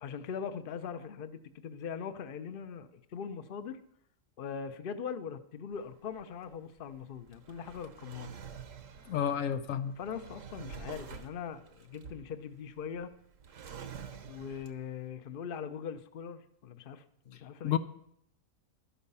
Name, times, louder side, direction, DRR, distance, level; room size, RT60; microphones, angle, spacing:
voice 1, 0.0-3.8 4.4-8.3 10.0-13.1 14.2-17.8, left 7 dB, 50° left, 10 dB, 0.8 m, -41 dB
Drawer open or close, 5.7-15.0, right 7 dB, 70° right, 1.3 m, -48 dB
voice 2, 9.1-9.9 17.6-17.8, left 9 dB, 80° left, 11 dB, 1.1 m, -30 dB
12.0 x 11.5 x 5.5 m, 0.72 s
omnidirectional pair, 1.4 m